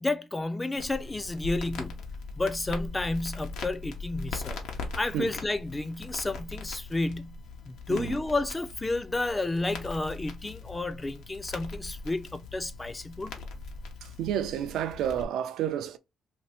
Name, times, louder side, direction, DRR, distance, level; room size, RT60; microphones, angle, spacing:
voice 1, 0.0-2.0 2.4-4.6 5.0-7.4 7.7-13.3, left 2 dB, 20° left, 0.3 m, -31 dB
Crackle, 0.8-15.2, left 3 dB, 85° left, 0.7 m, -40 dB
voice 2, 14.0-16.0, right 10 dB, 85° right, 0.4 m, -30 dB
2.6 x 2.6 x 3.3 m
cardioid pair, 90°, 0 cm